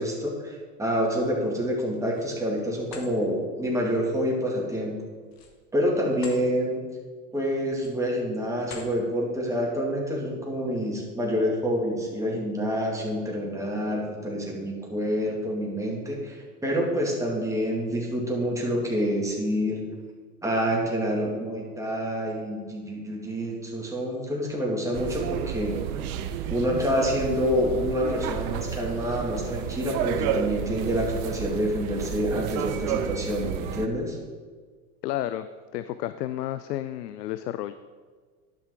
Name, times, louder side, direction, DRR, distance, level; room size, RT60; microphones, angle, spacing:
voice 1, 0.0-5.0 5.7-6.8 7.3-19.8 20.4-25.8 26.5-34.2, equal, 5° right, -2 dB, 2.2 m, -27 dB
sound 1, 1.7-2.3 2.8-3.1 5.2-6.4 6.9-7.1 7.6-8.1 8.6-9.0, left 6 dB, 45° left, 1.6 m, -45 dB
sound 2, 24.9-33.9, right 9 dB, 65° right, 0.8 m, -31 dB
voice 2, 35.0-35.5 35.7-37.7, left 13 dB, 85° left, 12 dB, 0.5 m, -31 dB
11.0 x 5.8 x 4.7 m, 1.5 s
hypercardioid pair, 105°, 47 cm